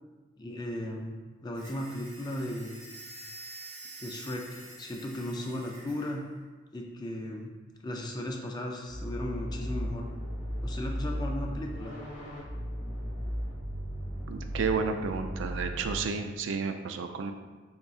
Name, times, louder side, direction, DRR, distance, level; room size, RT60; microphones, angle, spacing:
voice 1, 0.4-1.2 1.4-2.8 4.0-6.2 6.7-7.5 7.8-10.1 10.6-12.0, left 1 dB, 20° left, 1 dB, 0.3 m, -36 dB
sound 1, 1.5-6.1, right 1 dB, 15° right, 1.1 m, -47 dB
sound 2, 8.9-16.0, equal, 40° left, 1.4 m, -36 dB
voice 2, 14.3-17.3, right 5 dB, 80° right, 6 dB, 0.3 m, -31 dB
3.9 x 3.6 x 2.4 m, 1.3 s
head